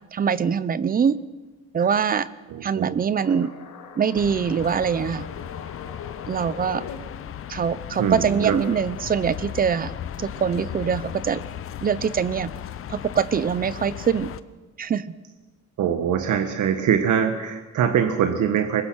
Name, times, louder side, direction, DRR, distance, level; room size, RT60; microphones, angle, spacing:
voice 1, 0.1-1.2 1.7-2.3 2.6-3.5 4.0-5.3 6.3-6.8 7.5-9.9 10.2-11.4 11.8-12.5 12.9-14.3 14.8-15.1, right 7 dB, 30° right, 16 dB, 0.7 m, -23 dB
voice 2, 2.5-3.0 8.0-8.6 15.8-18.8, right 8 dB, 80° right, 6 dB, 1.6 m, -23 dB
sound 1, 3.1-7.0, left 6 dB, 80° left, 3.1 m, -41 dB
sound 2, 4.1-14.4, left 10 dB, 45° left, 0.8 m, -36 dB
25.0 x 21.0 x 6.3 m, 1.2 s
cardioid pair, 175°, 29 cm